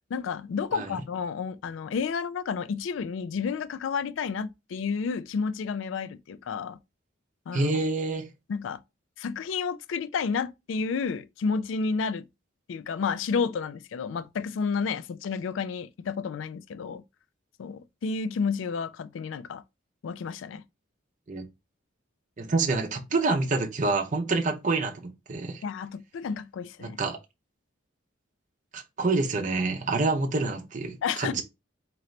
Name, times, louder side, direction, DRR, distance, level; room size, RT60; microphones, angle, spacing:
voice 1, 0.1-6.8 7.5-7.7 8.5-8.8 9.2-12.3 12.7-17.0 17.6-19.6 20.0-20.6 25.6-27.0 31.0-31.4, left 5 dB, 80° left, 0.3 m, -31 dB
voice 2, 7.5-8.3 21.3-21.5 22.4-25.6 26.8-27.2 28.7-31.4, right 3 dB, 40° right, 0.7 m, -27 dB
3.8 x 2.9 x 3.2 m
head